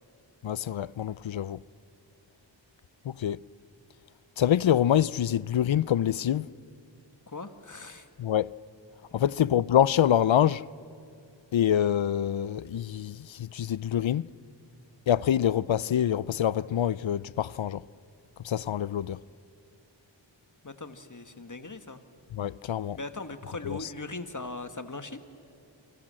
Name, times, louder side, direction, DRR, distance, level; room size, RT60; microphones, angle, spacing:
voice 1, 0.4-1.6 3.0-3.4 4.4-6.5 8.2-8.5 9.1-10.6 11.5-14.3 15.1-17.8 18.4-19.2 22.3-23.0 23.7-23.9, left 10 dB, 80° left, 0.6 m, -26 dB
voice 2, 7.3-8.1 9.1-9.2 20.6-22.0 22.9-25.2, left 2 dB, 40° left, 1.6 m, -39 dB
28.5 x 25.5 x 7.6 m
wide cardioid pair, 55°, 46 cm